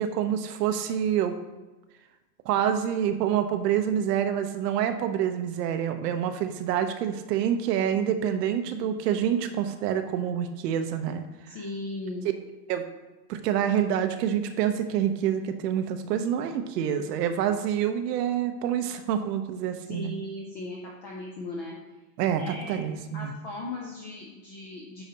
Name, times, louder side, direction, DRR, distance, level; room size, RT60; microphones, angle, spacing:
voice 1, 0.0-1.4 2.5-11.3 12.7-12.8 13.3-20.1 22.2-23.3, right 9 dB, 75° right, 8 dB, 0.8 m, -27 dB
voice 2, 11.5-12.3 19.9-21.7 22.3-22.8 23.1-25.0, left 2 dB, 30° left, -2 dB, 0.4 m, -37 dB
8.8 x 5.0 x 2.8 m, 1.1 s
supercardioid pair, 170°, 49 cm